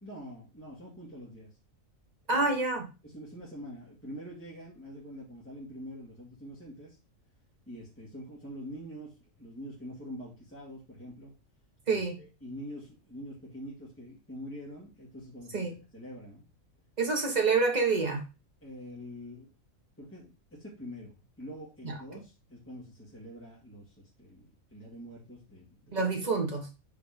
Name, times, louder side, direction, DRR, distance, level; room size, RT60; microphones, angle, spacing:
voice 1, 0.0-1.5 3.0-7.0 7.7-11.3 11.9-16.4 18.6-19.5 20.0-26.1, equal, 10° left, -6 dB, 2.1 m, -45 dB
voice 2, 2.3-2.8 11.9-12.2 15.5-15.7 17.0-18.2 21.8-21.9 25.9-26.7, right 4 dB, 30° right, 2 dB, 1.5 m, -27 dB
5.1 x 4.5 x 5.2 m, 0.30 s
omnidirectional pair, 1.4 m